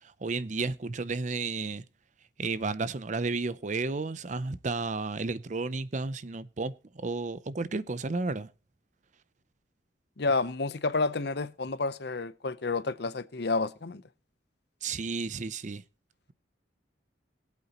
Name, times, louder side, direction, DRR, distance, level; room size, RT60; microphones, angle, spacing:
voice 1, 0.0-1.8 2.4-8.5 14.8-15.8, right 3 dB, 40° right, 0.6 m, -32 dB
voice 2, 10.2-14.0, left 3 dB, 60° left, 0.8 m, -30 dB
21.5 x 8.4 x 3.0 m
head